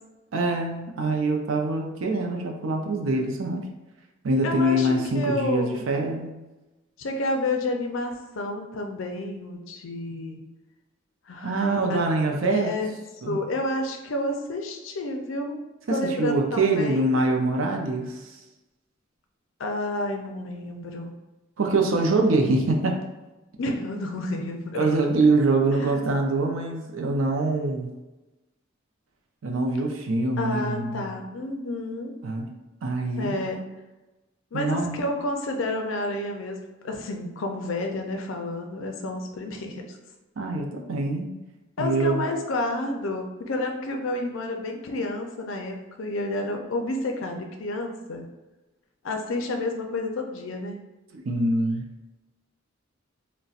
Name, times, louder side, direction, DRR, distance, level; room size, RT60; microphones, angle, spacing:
voice 1, 0.3-3.7 4.2-6.3 11.4-12.8 13.2-13.4 15.9-18.2 21.6-23.0 24.7-27.9 29.4-31.0 32.2-32.5 32.8-33.3 34.5-35.1 40.4-41.3 41.8-42.2 51.1-51.8, right 2 dB, 80° right, 2 dB, 0.5 m, -24 dB
voice 2, 4.4-6.0 7.0-10.4 11.3-12.0 12.4-12.9 13.3-15.6 15.9-17.0 19.6-21.1 23.6-24.9 25.7-26.1 30.4-32.2 33.2-33.7 34.5-40.0 41.8-48.3 49.0-50.8, left 2 dB, 70° left, 3 dB, 0.5 m, -30 dB
4.0 x 2.1 x 2.4 m, 1.1 s
head